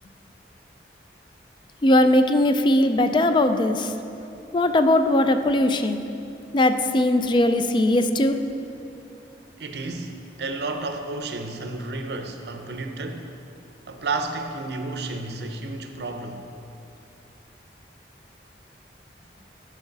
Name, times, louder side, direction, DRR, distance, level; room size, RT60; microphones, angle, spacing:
voice 1, 1.8-3.9 4.5-6.0 6.5-8.4, left 1 dB, 25° left, 9 dB, 0.3 m, -19 dB
voice 2, 9.6-13.4 13.9-16.5, right 3 dB, 70° right, 6 dB, 0.6 m, -32 dB
10.5 x 6.2 x 4.0 m, 2.8 s
head